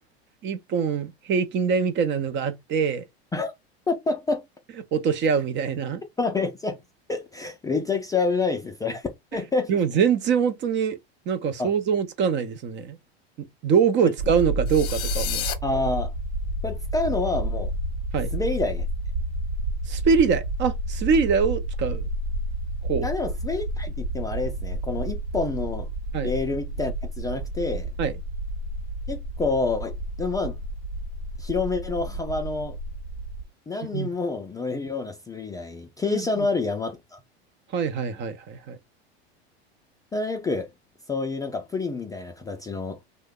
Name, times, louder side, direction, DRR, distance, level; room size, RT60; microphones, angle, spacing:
voice 1, 0.4-3.0 4.9-6.0 9.7-11.0 11.3-13.0 13.6-15.5 18.1-18.3 19.9-22.1 22.8-23.0 26.1-26.3 28.0-28.1 33.9-34.1 36.0-36.5 37.7-38.8, right 6 dB, 35° right, 0.5 m, -24 dB
voice 2, 3.9-4.4 6.2-6.8 7.1-9.8 11.6-11.7 15.6-16.1 16.6-17.7 18.3-18.9 23.0-25.9 26.2-27.9 29.1-29.9 30.2-30.6 31.4-32.8 33.7-37.2 40.1-40.7 41.1-43.0, left 3 dB, 10° left, 0.4 m, -28 dB
sound 1, 14.2-33.4, right 1 dB, 75° right, 0.8 m, -30 dB
sound 2, 14.7-15.5, left 11 dB, 50° left, 0.8 m, -30 dB
2.7 x 2.1 x 3.6 m
hypercardioid pair, 100°, 32 cm